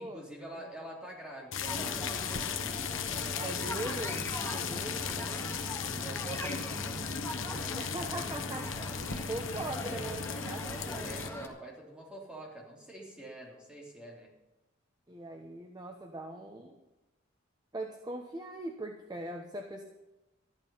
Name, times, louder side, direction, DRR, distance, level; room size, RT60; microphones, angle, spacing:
voice 1, 0.0-2.8 3.1-4.1 4.9-5.2 6.0-7.0 7.3-7.8 8.1-8.2 9.4-10.1 10.4-14.3, right 1 dB, 5° right, -3 dB, 3.4 m, -46 dB
sound 1, 1.5-11.3, left 6 dB, 80° left, 1.1 m, -36 dB
sound 2, 1.7-11.5, left 1 dB, 15° left, 1.8 m, -41 dB
voice 2, 3.4-5.5 7.8-8.7 9.0-11.1 15.1-16.8 17.7-19.8, right 1 dB, 20° right, 3 dB, 1.1 m, -41 dB
14.0 x 12.0 x 5.6 m, 1.0 s
head